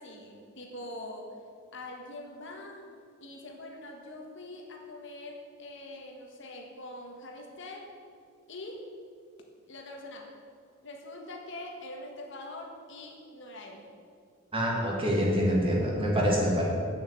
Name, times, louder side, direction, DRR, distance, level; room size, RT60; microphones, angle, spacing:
voice 1, 0.0-1.4 1.7-2.9 3.2-7.9 8.5-8.9 9.7-10.3 10.8-13.9, left 1 dB, 65° left, 2 dB, 1.6 m, -43 dB
voice 2, 14.5-16.6, equal, 25° right, -3 dB, 2.3 m, -26 dB
8.5 x 7.1 x 8.2 m, 2.2 s
head